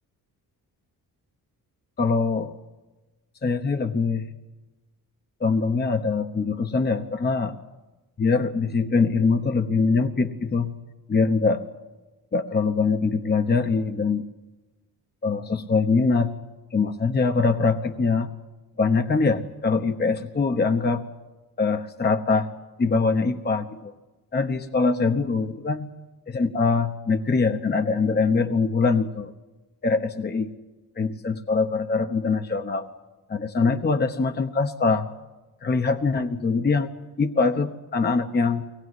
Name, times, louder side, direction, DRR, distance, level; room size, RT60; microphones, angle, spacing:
voice 1, 2.0-2.5 3.4-4.3 5.4-7.6 8.2-10.7 11.1-11.6 12.3-14.3 15.2-16.3 16.7-18.3 18.8-21.0 21.6-22.5 22.8-23.9 24.3-25.9 26.3-29.3 29.8-30.5 31.0-32.9 33.3-35.1 35.6-36.9 37.2-38.7, left 4 dB, 25° left, 7 dB, 1.1 m, -23 dB
23.5 x 19.5 x 9.5 m, 1.1 s
cardioid pair, 125°, 36 cm